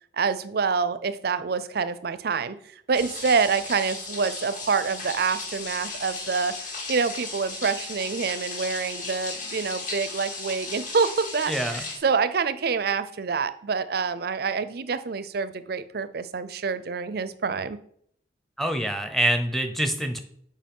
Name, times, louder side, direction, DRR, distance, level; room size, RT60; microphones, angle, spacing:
voice 1, 0.1-2.6 2.9-6.5 6.9-17.8, right 5 dB, 60° right, 13 dB, 0.5 m, -26 dB
sound 1, 2.9-12.0, left 3 dB, 45° left, 1.9 m, -36 dB
voice 2, 11.5-11.8 18.6-20.2, right 1 dB, ahead, 6 dB, 0.8 m, -25 dB
7.6 x 5.2 x 5.4 m, 0.66 s
head